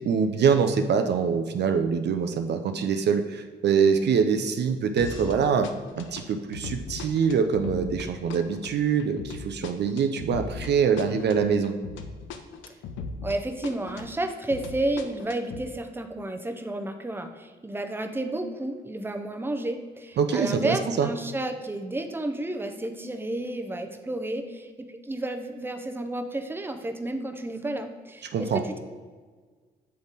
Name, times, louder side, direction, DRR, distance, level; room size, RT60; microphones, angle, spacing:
voice 1, 0.0-5.7 6.0-11.7 20.2-21.1 28.3-28.6, right 6 dB, 60° right, 7 dB, 0.5 m, -24 dB
sound 1, 5.0-5.4 5.6-13.4 13.6-15.6, left 5 dB, 80° left, 0.5 m, -38 dB
voice 2, 13.2-28.8, right 1 dB, 10° right, 5 dB, 0.7 m, -31 dB
7.7 x 3.5 x 4.1 m, 1.5 s
supercardioid pair, 55°, 20 cm